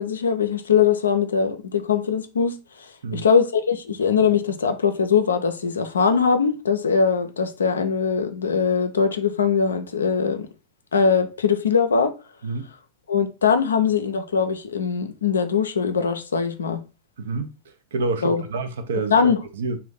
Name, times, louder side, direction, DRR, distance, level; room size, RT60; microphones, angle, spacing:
voice 1, 0.0-2.5 3.1-10.5 10.9-12.1 13.1-16.8 18.2-18.4 19.1-19.4, left 6 dB, 70° left, 0.4 m, -21 dB
voice 2, 17.2-17.5 17.9-19.1 19.5-19.8, right 3 dB, 60° right, 0.4 m, -27 dB
2.6 x 2.1 x 3.6 m
figure-of-eight pair, 90°, 0 cm